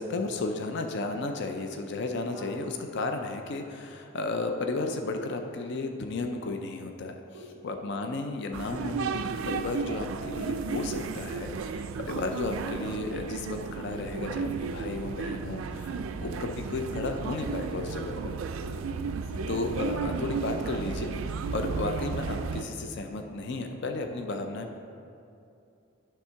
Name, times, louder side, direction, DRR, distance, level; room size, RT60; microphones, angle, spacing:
voice 1, 0.0-7.2 7.6-18.3 19.5-24.8, left 3 dB, 55° left, 5 dB, 0.5 m, -33 dB
voice 2, 2.3-2.8 7.3-7.9 18.5-19.7, left 2 dB, 70° left, 0 dB, 1.1 m, -47 dB
sound 1, 8.5-22.6, right 5 dB, 70° right, 0.4 m, -34 dB
10.0 x 3.5 x 5.7 m, 2.5 s
head